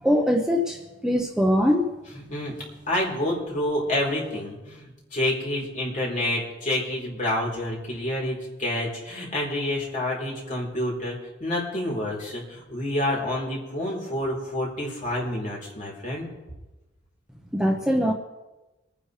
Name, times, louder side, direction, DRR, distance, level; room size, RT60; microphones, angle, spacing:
voice 1, 0.0-1.9 17.5-18.1, equal, 5° right, 1 dB, 0.9 m, -22 dB
voice 2, 2.9-16.3, left 1 dB, 40° left, -3 dB, 4.0 m, -28 dB
26.0 x 10.0 x 3.3 m, 1.1 s
head